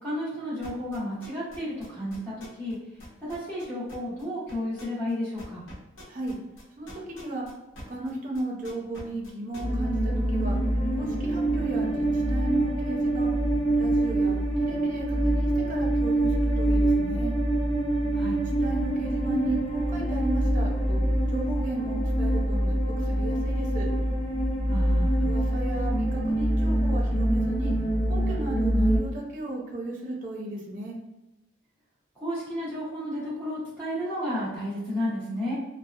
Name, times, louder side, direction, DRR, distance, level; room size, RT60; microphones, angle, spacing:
voice 1, 0.0-2.8 3.2-5.6 18.1-18.4 24.7-25.3 32.2-35.5, equal, 10° left, -10 dB, 0.8 m, -32 dB
sound 1, 0.6-2.7 3.0-8.1 8.3-9.6, left 1 dB, 75° left, 0.9 m, -47 dB
voice 2, 6.8-7.5 7.9-10.6 11.0-13.3 13.8-17.3 18.6-21.0 21.3-23.9 25.2-27.7 28.1-31.0, right 2 dB, 45° right, -2 dB, 0.6 m, -35 dB
sound 2, 9.6-29.0, right 1 dB, 40° left, 0.9 m, -25 dB
2.7 x 2.1 x 2.4 m, 0.98 s
head